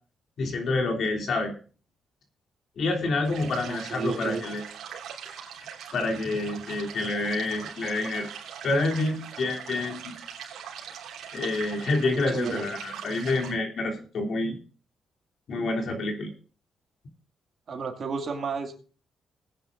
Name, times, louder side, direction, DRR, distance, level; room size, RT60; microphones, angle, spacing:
voice 1, 0.4-1.5 2.8-4.6 5.9-8.3 8.6-10.1 11.3-14.6 15.5-16.3, left 2 dB, 65° left, 1 dB, 3.2 m, -28 dB
sound 1, 3.2-13.5, right 8 dB, 80° right, 3.2 m, -41 dB
voice 2, 3.7-4.4 12.1-12.6 17.7-18.8, right 5 dB, 55° right, 3 dB, 2.3 m, -32 dB
20.0 x 9.7 x 2.6 m, 0.38 s
cardioid pair, 80°, 0 cm